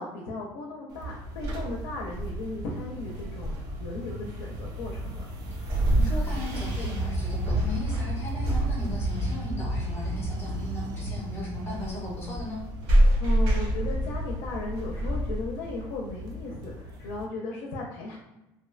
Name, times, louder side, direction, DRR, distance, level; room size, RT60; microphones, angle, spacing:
voice 1, 0.0-5.3 11.6-12.4 13.2-18.2, left 2 dB, 70° left, -1 dB, 0.5 m, -36 dB
sound 1, 0.9-17.2, equal, 35° right, 0.4 m, -35 dB
sound 2, 1.4-15.8, right 1 dB, 70° right, 1.1 m, -29 dB
voice 2, 5.9-12.6, left 1 dB, 20° left, -2 dB, 0.6 m, -37 dB
sound 3, 8.9-11.3, left 2 dB, 90° right, 0.7 m, -40 dB
2.6 x 2.1 x 2.4 m, 0.98 s
cardioid pair, 175°, 11 cm